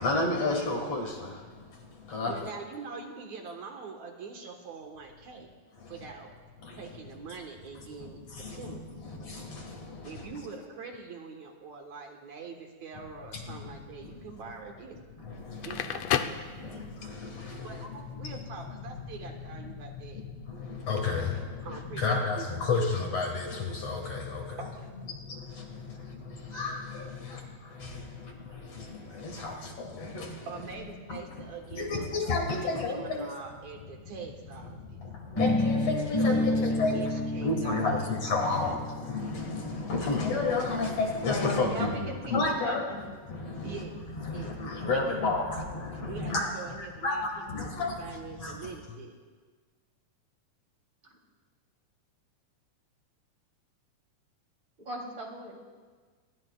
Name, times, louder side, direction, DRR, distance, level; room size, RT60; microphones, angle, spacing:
voice 1, 0.0-2.3 5.8-5.9 6.6-6.8 8.0-8.8 9.0-10.3 13.3-13.7 14.0-14.1 15.2-15.9 16.2-17.8 18.2-18.4 19.6-19.7 20.1-24.6 25.1-30.4 31.1-31.2 31.8-33.3 34.8-37.1 37.4-42.8 43.3-43.8 44.2-48.6, left 3 dB, 55° left, 2 dB, 2.7 m, -32 dB
voice 2, 2.3-5.5 5.9-6.3 6.8-8.8 10.0-15.0 15.7-16.9 17.6-20.2 21.6-22.5 24.6-24.9 30.5-35.0 36.2-38.8 43.6-44.0 44.3-45.3 46.0-49.2, right 5 dB, 65° right, 2 dB, 2.6 m, -44 dB
Crackle, 15.4-17.2, left 10 dB, 80° left, 1.4 m, -31 dB
sound 1, 35.4-41.3, left 2 dB, 15° left, 0.8 m, -30 dB
voice 3, 41.7-43.0 51.0-51.1 54.8-55.7, right 2 dB, 35° right, -1 dB, 3.7 m, -39 dB
26.5 x 22.5 x 2.4 m, 1.5 s
omnidirectional pair, 3.7 m